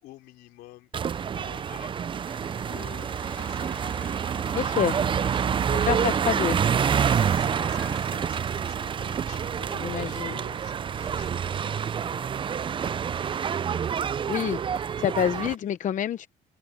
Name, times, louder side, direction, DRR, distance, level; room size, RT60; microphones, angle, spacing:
voice 1, 0.0-6.0 6.9-12.9, left 16 dB, 90° left, 3.3 m, -50 dB
sound 1, 0.9-15.5, right 7 dB, 30° right, 0.4 m, -27 dB
sound 2, 2.2-8.7, left 1 dB, 10° left, 3.6 m, -47 dB
voice 2, 4.5-5.0 5.7-6.6 9.7-10.4 14.3-16.3, left 9 dB, 55° left, 0.8 m, -28 dB
cardioid pair, 95°, 16 cm